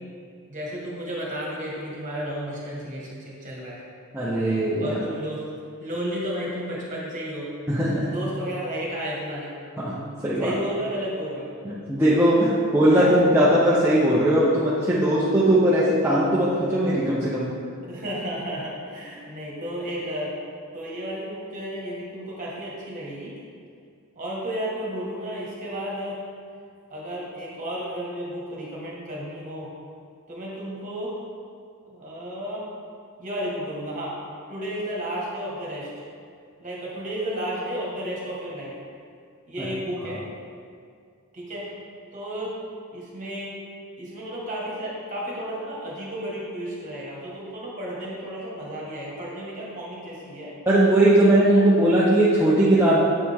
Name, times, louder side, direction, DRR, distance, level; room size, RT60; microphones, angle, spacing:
voice 1, 0.5-3.8 4.8-5.4 5.8-7.5 8.0-9.5 10.4-11.5 12.9-13.1 17.8-20.3 20.7-23.3 24.1-26.2 26.9-29.7 30.3-31.1 31.8-32.6 33.2-34.1 34.5-35.9 36.6-38.7 39.5-40.2 41.3-41.7 42.1-42.5 42.9-43.5 44.0-50.5 51.2-51.6, equal, 35° right, -5 dB, 1.6 m, -32 dB
voice 2, 4.1-5.0 7.7-8.1 9.8-10.5 11.6-17.5 50.7-53.0, right 1 dB, 10° right, -9 dB, 0.7 m, -19 dB
7.3 x 4.9 x 3.5 m, 2.3 s
head